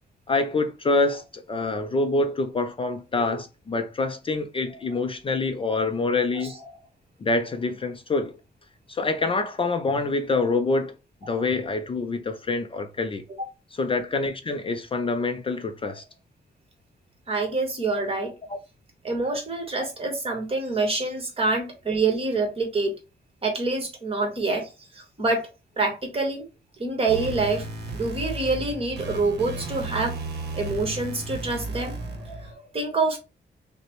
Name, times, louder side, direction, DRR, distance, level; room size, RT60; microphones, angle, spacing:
voice 1, 0.3-6.5 7.2-8.3 8.9-10.9 11.2-13.2 13.7-16.0, left 3 dB, 30° left, 0.4 m, -26 dB
voice 2, 17.3-18.3 19.0-22.9 23.4-25.5 25.8-26.4 26.8-27.7 27.9-30.2 30.5-33.2, right 3 dB, 30° right, 1.2 m, -26 dB
sound 1, 27.1-32.5, right 2 dB, 65° right, 0.8 m, -34 dB
5.5 x 2.1 x 3.0 m
wide cardioid pair, 160°, 18 cm